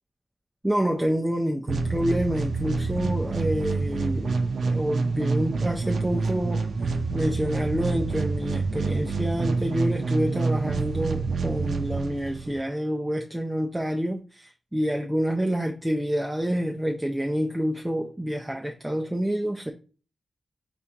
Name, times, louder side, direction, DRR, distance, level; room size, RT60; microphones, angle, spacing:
voice 1, 0.6-19.7, equal, 10° right, 0.5 m, -28 dB
sound 1, 1.7-12.6, right 4 dB, 80° right, 0.5 m, -27 dB
4.3 x 3.4 x 2.7 m
wide cardioid pair, 85°, 0 cm